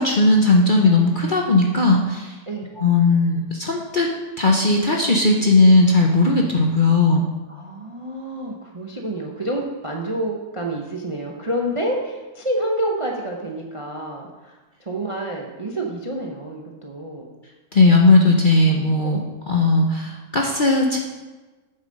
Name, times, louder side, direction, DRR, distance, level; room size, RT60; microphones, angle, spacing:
voice 1, 0.0-2.3 2.8-4.1 4.4-7.2 17.7-19.2 19.5-21.0, left 2 dB, 40° left, 1 dB, 0.7 m, -17 dB
voice 2, 7.5-17.3 19.0-19.2, right 1 dB, 30° right, 0 dB, 0.6 m, -28 dB
8.1 x 7.0 x 5.3 m, 1.2 s
omnidirectional pair, 1.7 m